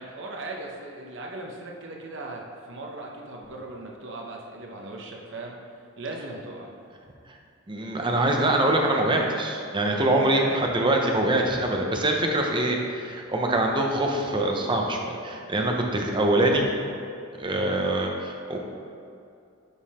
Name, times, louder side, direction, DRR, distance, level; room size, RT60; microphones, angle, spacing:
voice 1, 0.0-5.6 6.0-6.7 9.9-10.7 17.5-17.8, right 2 dB, 65° right, 0 dB, 1.0 m, -38 dB
voice 2, 7.7-16.7 17.4-18.6, right 1 dB, 25° right, 1 dB, 0.7 m, -24 dB
9.9 x 3.8 x 4.3 m, 2.5 s
head